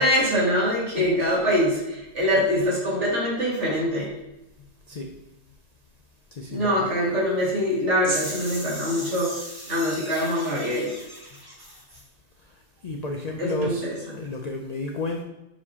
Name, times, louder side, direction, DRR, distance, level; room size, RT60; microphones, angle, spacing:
voice 1, 0.0-4.1 6.5-9.3 9.7-10.9 13.4-14.0, equal, 65° right, -5 dB, 2.3 m, -24 dB
voice 2, 6.4-6.9 12.8-13.9 14.2-15.2, left 2 dB, 60° left, 3 dB, 0.4 m, -31 dB
sound 1, 8.0-12.1, right 1 dB, 20° right, 1.3 m, -36 dB
7.3 x 4.7 x 2.8 m, 0.95 s
omnidirectional pair, 1.3 m